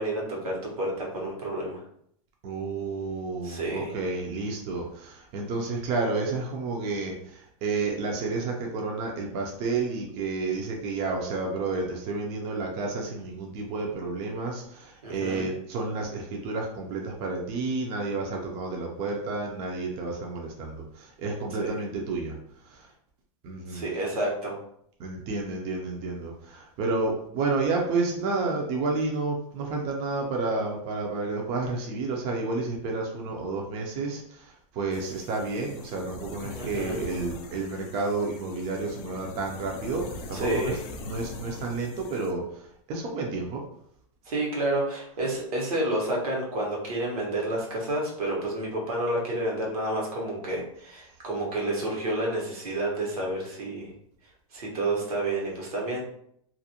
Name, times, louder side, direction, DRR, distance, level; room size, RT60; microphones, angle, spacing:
voice 1, 0.0-1.8 3.4-4.0 15.0-15.5 21.6-21.8 23.7-24.6 36.5-37.0 40.3-40.8 44.2-53.9 54.5-56.0, right 1 dB, 85° right, -2 dB, 1.1 m, -30 dB
voice 2, 2.4-22.3 22.7-22.8 23.4-23.8 25.0-42.6 42.9-43.6, right 3 dB, 35° right, 0 dB, 0.5 m, -30 dB
sound 1, 34.9-42.3, left 3 dB, 35° left, 0.4 m, -42 dB
2.5 x 2.1 x 2.7 m, 0.69 s
supercardioid pair, 140°, 19 cm